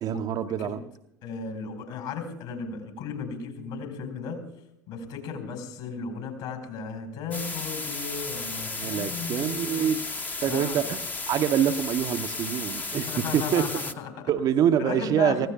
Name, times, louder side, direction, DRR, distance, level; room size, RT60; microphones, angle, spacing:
voice 1, 0.0-0.8 8.8-10.0 10.4-11.0 11.3-13.6 14.3-15.5, right 9 dB, 40° right, 0.7 m, -25 dB
voice 2, 1.2-4.5 4.9-9.9 10.5-10.9 12.9-14.3 14.8-15.5, left 5 dB, 60° left, 4.5 m, -35 dB
sound 1, 7.3-13.9, left 3 dB, 15° left, 0.9 m, -34 dB
29.5 x 16.0 x 2.3 m
figure-of-eight pair, 65°, 10 cm